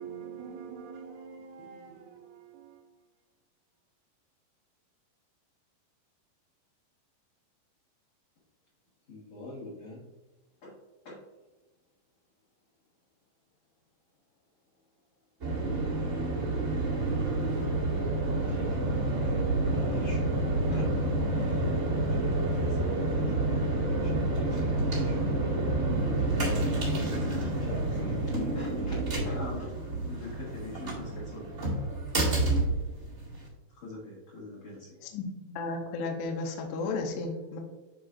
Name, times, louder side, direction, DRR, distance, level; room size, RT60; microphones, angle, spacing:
voice 1, 0.0-2.4, right 6 dB, 80° right, 2.9 m, -44 dB
voice 2, 9.1-10.1 10.6-10.8 11.0-11.2 18.4-20.2 20.7-20.9 21.3-31.5 33.7-35.0, left 2 dB, 55° left, 2.1 m, -44 dB
sound 1, 15.4-33.5, right 2 dB, 35° right, 1.1 m, -29 dB
voice 3, 35.0-37.6, left 3 dB, 80° left, 2.8 m, -34 dB
11.5 x 4.3 x 2.5 m
omnidirectional pair, 5.0 m